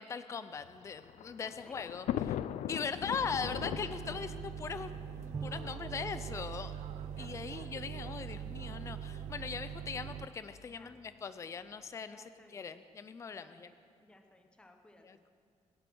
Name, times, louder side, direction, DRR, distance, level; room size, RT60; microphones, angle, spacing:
voice 1, 0.0-2.1 2.7-4.9 5.2-6.7 7.2-12.2 12.5-13.7 15.0-15.3, left 6 dB, 25° left, 12 dB, 0.5 m, -40 dB
Thunder, 0.6-5.9 6.8-6.9 7.1-7.2 8.3-8.6, left 11 dB, 80° left, 0.4 m, -40 dB
sound 1, 3.1-10.3, right 8 dB, 70° right, 0.6 m, -43 dB
Bowed string instrument, 5.3-9.1, right 4 dB, 20° right, 0.8 m, -49 dB
voice 2, 7.2-7.8 10.6-11.0 12.0-12.7 13.3-15.2, left 1 dB, 10° left, 4 dB, 0.9 m, -61 dB
25.0 x 8.7 x 6.2 m, 2.2 s
cardioid pair, 170°, 12 cm